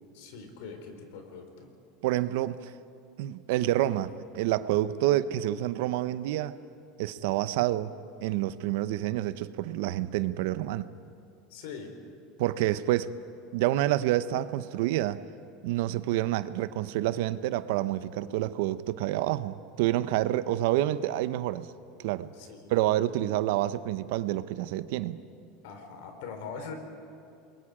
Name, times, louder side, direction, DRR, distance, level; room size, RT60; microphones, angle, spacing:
voice 1, 0.1-1.7 5.0-5.1 11.5-11.9 16.1-16.2 20.5-20.6 22.3-22.8 25.6-26.7, left 5 dB, 75° left, 4.0 m, -42 dB
voice 2, 2.0-2.7 3.2-6.5 7.0-7.9 8.2-10.8 12.4-13.1 13.5-15.2 15.6-21.7 22.0-22.3 22.7-25.2, right 14 dB, 70° right, 0.8 m, -28 dB
29.0 x 22.5 x 5.0 m
supercardioid pair, 150°, 0 cm